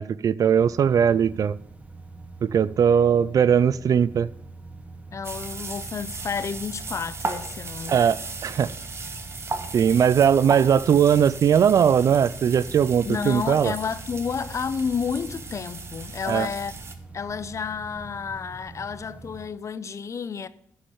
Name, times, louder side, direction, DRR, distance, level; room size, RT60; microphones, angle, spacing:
voice 1, 0.0-1.6 2.4-4.3 7.9-8.7 9.7-13.7 16.3-16.5, right 8 dB, 60° right, 0.4 m, -20 dB
sound 1, 0.6-19.5, right 3 dB, 20° right, 1.0 m, -44 dB
voice 2, 5.1-8.1 13.0-16.7 17.1-20.5, left 6 dB, 50° left, 0.7 m, -31 dB
sound 2, 5.2-16.9, right 3 dB, 40° right, 1.5 m, -36 dB
10.0 x 5.3 x 7.2 m
cardioid pair, 65°, 7 cm